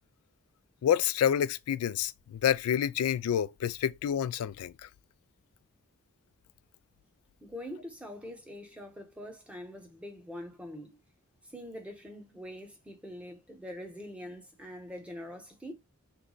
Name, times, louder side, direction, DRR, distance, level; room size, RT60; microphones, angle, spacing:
voice 1, 0.8-4.9, left 9 dB, 85° left, 0.3 m, -28 dB
voice 2, 7.4-11.0 11.5-15.7, left 1 dB, 5° right, 0.7 m, -44 dB
3.1 x 2.2 x 3.8 m
head